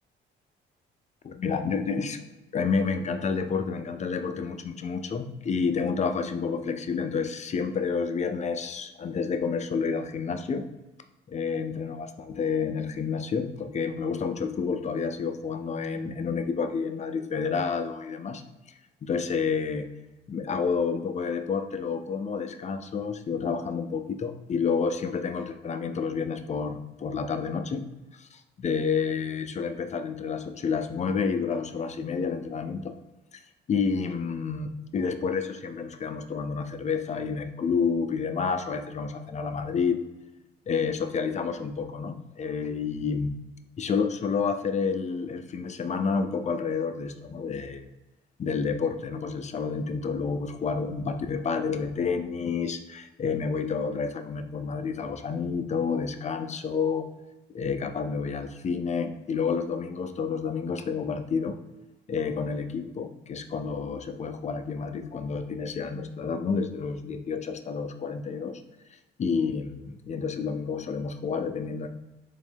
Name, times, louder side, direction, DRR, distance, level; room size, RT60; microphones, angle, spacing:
voice 1, 1.2-2.2 2.5-10.7 11.3-18.4 19.0-19.9 20.3-27.8 28.1-32.9 33.3-33.4 33.7-40.0 40.7-43.3 43.8-47.9 48.4-57.0 57.5-61.6 62.1-68.6 69.2-71.9, left 5 dB, 35° left, 7 dB, 0.4 m, -29 dB
3.7 x 3.1 x 3.4 m, 1.0 s
cardioid pair, 90°, 20 cm